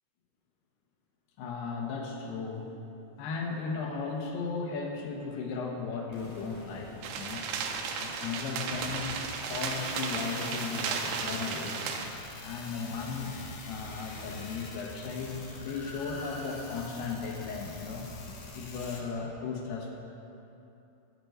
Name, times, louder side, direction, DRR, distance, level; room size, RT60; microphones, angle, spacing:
voice 1, 1.4-2.7 3.2-7.5 8.0-9.2 9.5-11.8 12.4-13.3 13.7-18.1 18.5-19.9, left 5 dB, 85° left, 1 dB, 3.2 m, -36 dB
sound 1, 6.1-12.0, equal, 25° left, 0.9 m, -54 dB
sound 2, 7.0-12.1, right 6 dB, 80° right, 2.8 m, -34 dB
sound 3, 8.7-19.0, left 2 dB, 60° left, 1.9 m, -44 dB
11.0 x 6.8 x 7.9 m, 2.8 s
omnidirectional pair, 4.5 m